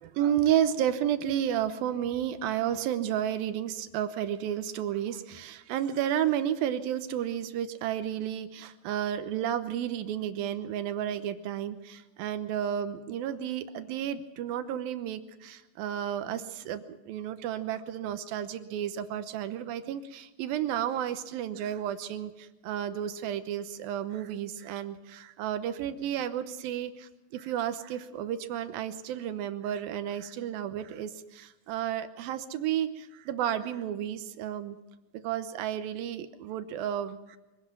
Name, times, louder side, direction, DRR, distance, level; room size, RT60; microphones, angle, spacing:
voice 1, 0.0-34.8 35.1-37.4, right 10 dB, 85° right, 9 dB, 2.8 m, -32 dB
24.0 x 18.0 x 6.0 m, 1.0 s
omnidirectional pair, 4.0 m